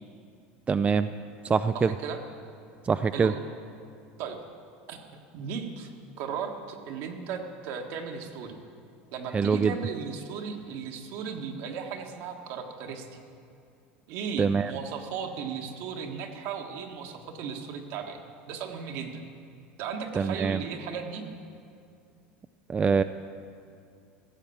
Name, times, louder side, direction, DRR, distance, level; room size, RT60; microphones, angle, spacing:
voice 1, 0.7-1.1 1.4-1.9 2.9-3.3 9.3-9.7 14.4-14.7 20.2-20.6 22.7-23.0, right 5 dB, 20° right, 11 dB, 0.3 m, -24 dB
voice 2, 1.7-2.2 3.1-3.4 4.2-4.4 4.9-5.0 5.3-5.9 6.2-8.6 9.1-13.1 14.1-18.2 18.5-19.2 19.8-21.2, right 6 dB, 65° right, 3 dB, 1.5 m, -36 dB
15.0 x 7.6 x 7.1 m, 2.4 s
hypercardioid pair, 95°, 6 cm